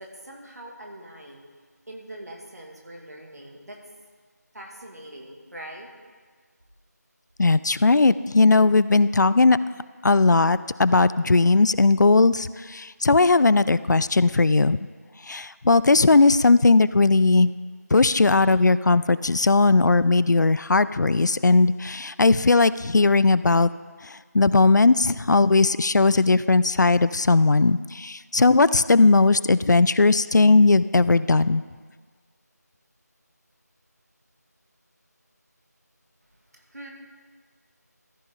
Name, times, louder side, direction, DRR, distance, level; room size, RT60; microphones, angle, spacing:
voice 1, 0.0-1.4 1.9-3.8 4.5-5.9 36.5-36.9, right 1 dB, 65° right, 0 dB, 2.2 m, -42 dB
voice 2, 7.4-9.6 10.0-14.8 15.3-17.5 17.9-23.7 24.3-31.6, left 3 dB, 85° left, 16 dB, 0.4 m, -18 dB
14.0 x 6.3 x 3.8 m, 1.5 s
figure-of-eight pair, 175°, 9 cm